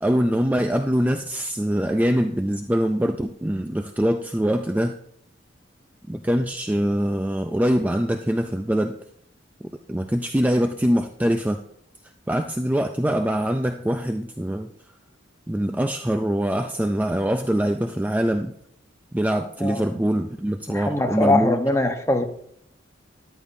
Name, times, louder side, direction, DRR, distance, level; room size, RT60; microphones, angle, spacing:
voice 1, 0.0-5.0 6.1-9.0 9.9-11.6 12.3-14.7 15.5-18.5 19.1-21.6, equal, 10° right, 6 dB, 0.4 m, -23 dB
voice 2, 20.7-22.2, left 2 dB, 15° left, 5 dB, 0.9 m, -22 dB
13.5 x 12.0 x 2.7 m, 0.70 s
head